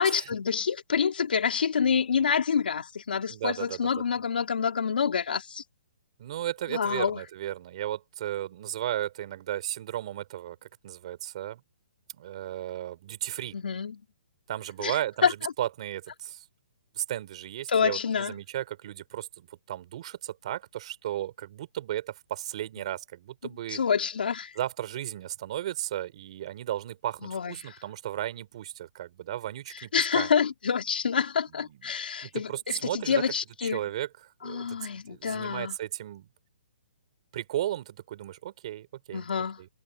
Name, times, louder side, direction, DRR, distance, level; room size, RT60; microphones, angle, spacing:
voice 1, 0.0-5.6 6.7-7.2 13.5-14.0 14.8-14.9 15.2-15.3 17.7-18.3 23.7-24.5 27.2-27.7 29.9-33.8 34.4-35.7 39.1-39.6, left 6 dB, 75° left, 3.2 m, -27 dB
voice 2, 3.3-4.2 6.2-11.6 12.1-13.6 14.5-16.4 16.9-23.8 24.6-30.3 31.5-31.9 32.2-33.2 33.6-34.1 34.4-36.3 37.3-39.2 39.6-39.7, right 12 dB, 40° right, 4.0 m, -35 dB
hypercardioid pair, 165°, 5 cm